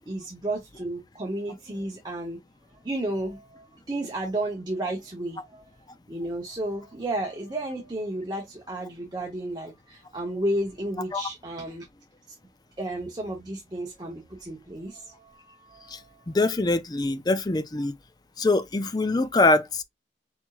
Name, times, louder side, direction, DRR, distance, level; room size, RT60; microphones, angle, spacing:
voice 1, 0.0-2.4 2.8-5.6 6.1-11.9 12.3-12.4 12.8-16.2, right 1 dB, 25° right, 0.9 m, -32 dB
voice 2, 16.3-18.0 18.4-19.8, left 2 dB, 25° left, 0.4 m, -23 dB
4.4 x 4.3 x 2.4 m
head